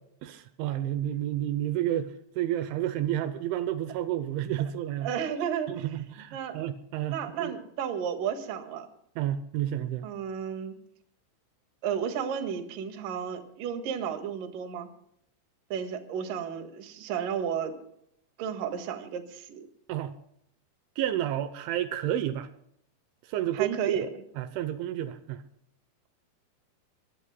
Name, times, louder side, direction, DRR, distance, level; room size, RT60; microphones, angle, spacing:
voice 1, 0.2-5.1 5.7-7.5 9.2-10.1 19.9-20.1 21.0-22.5 23.3-24.0 24.4-25.4, right 12 dB, 80° right, 11 dB, 3.2 m, -30 dB
voice 2, 5.0-5.9 6.3-6.6 7.1-8.9 10.0-10.7 11.8-14.9 15.7-17.8 18.4-19.6 23.5-24.1, right 8 dB, 55° right, 6 dB, 2.9 m, -32 dB
23.5 x 21.0 x 2.2 m, 0.72 s
omnidirectional pair, 5.5 m